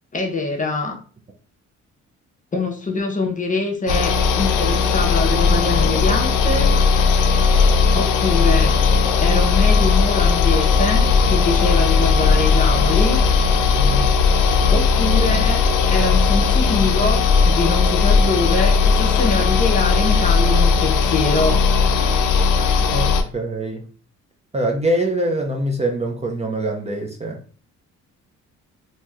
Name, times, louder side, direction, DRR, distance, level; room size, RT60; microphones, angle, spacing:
voice 1, 0.1-1.0 2.5-6.7 7.9-8.8 9.2-13.2 14.7-15.7 15.9-21.6, left 3 dB, 25° left, 0.6 m, -24 dB
sound 1, 3.9-23.2, left 5 dB, 85° left, 0.5 m, -17 dB
voice 2, 13.7-14.1 22.9-23.9 24.5-27.4, right 1 dB, 20° right, 0.5 m, -24 dB
3.0 x 2.7 x 2.3 m
cardioid pair, 90°, 30 cm